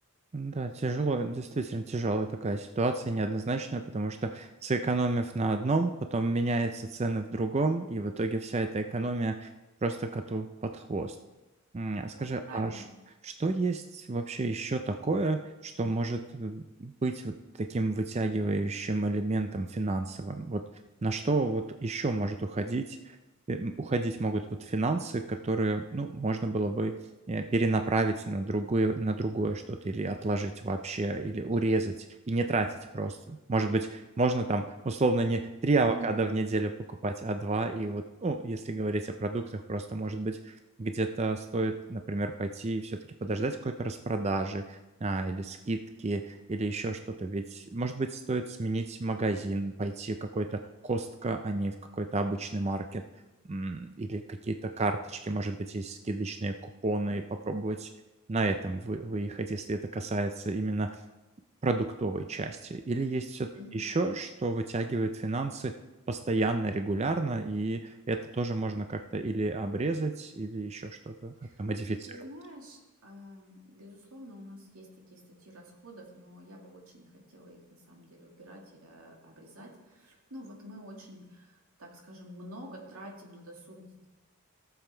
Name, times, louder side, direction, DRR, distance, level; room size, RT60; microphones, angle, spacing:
voice 1, 0.3-9.5 9.8-11.2 11.7-12.8 13.2-20.6 21.0-23.2 23.5-27.0 27.3-53.0 53.4-57.9 58.3-61.0 61.6-65.7 66.1-71.3 71.6-72.2, right 2 dB, 30° right, 7 dB, 0.4 m, -31 dB
voice 2, 12.1-12.9 35.8-36.3 63.5-63.9 71.4-71.7 72.1-84.1, right 1 dB, 75° right, 0 dB, 2.2 m, -48 dB
15.0 x 7.0 x 4.4 m, 1.1 s
head